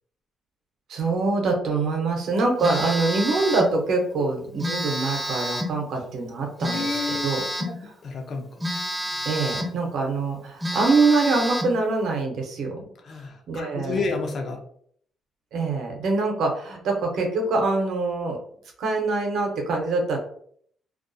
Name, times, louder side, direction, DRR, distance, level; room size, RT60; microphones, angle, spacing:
voice 1, 0.9-7.4 7.8-7.9 9.2-12.9 13.5-14.1 15.5-18.4 18.8-20.2, right 3 dB, 75° right, 1 dB, 0.7 m, -24 dB
Telephone, 2.6-3.8 4.6-5.8 6.6-7.8 8.6-9.8 10.2-10.3 10.6-11.8, equal, 10° right, 0.5 m, -29 dB
voice 2, 6.7-7.3 7.6-7.7 8.0-8.5 13.1-14.6, left 4 dB, 55° left, 3 dB, 0.5 m, -30 dB
2.3 x 2.2 x 2.6 m, 0.62 s
cardioid pair, 90°, 0 cm